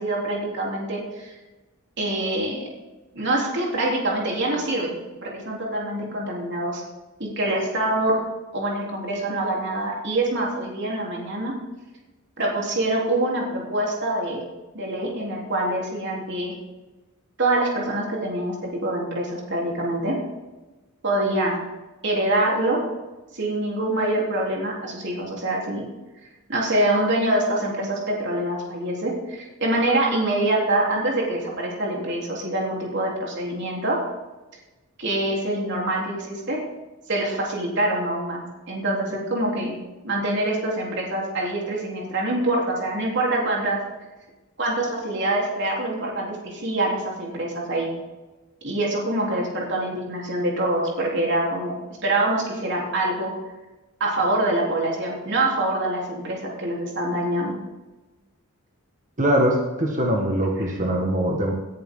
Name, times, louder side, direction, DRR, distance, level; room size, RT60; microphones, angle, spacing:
voice 1, 0.0-1.3 2.0-2.6 3.1-5.0 5.2-6.8 7.2-8.2 8.5-11.5 12.4-14.4 14.7-16.5 17.4-20.2 21.0-21.6 22.0-22.8 23.3-25.9 26.5-34.0 35.0-36.6 37.1-39.8 40.0-43.8 44.6-47.9 48.6-53.3 54.0-57.5 60.6-60.7, right 1 dB, 50° right, -2 dB, 3.6 m, -25 dB
voice 2, 59.2-61.5, right 1 dB, 35° right, 0 dB, 1.7 m, -22 dB
18.5 x 10.5 x 3.9 m, 1.1 s
head